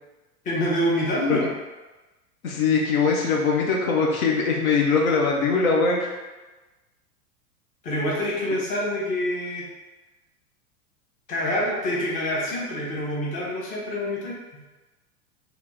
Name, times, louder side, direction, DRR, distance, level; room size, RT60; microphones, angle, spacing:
voice 1, 0.4-1.5 7.8-9.7 11.3-14.4, left 1 dB, 15° left, -4 dB, 0.7 m, -26 dB
voice 2, 2.4-6.2, left 4 dB, 60° left, -1 dB, 0.8 m, -22 dB
2.8 x 2.7 x 3.5 m, 1.1 s
figure-of-eight pair, 95°, 47 cm